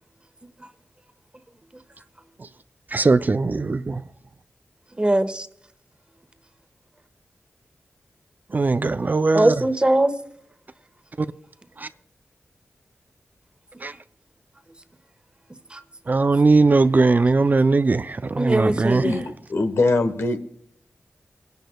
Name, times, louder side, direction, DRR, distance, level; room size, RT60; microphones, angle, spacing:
voice 1, 2.9-4.0 8.5-9.5 11.2-11.3 11.8-11.9 13.8-13.9 16.1-19.0, right 3 dB, 40° right, 0.4 m, -19 dB
voice 2, 5.0-5.5 9.3-10.1 15.7-15.8 18.4-19.2, right 1 dB, 25° right, 1.2 m, -21 dB
voice 3, 19.5-20.4, left 2 dB, 75° left, 1.1 m, -21 dB
25.5 x 10.5 x 2.3 m
cardioid pair, 45°, 4 cm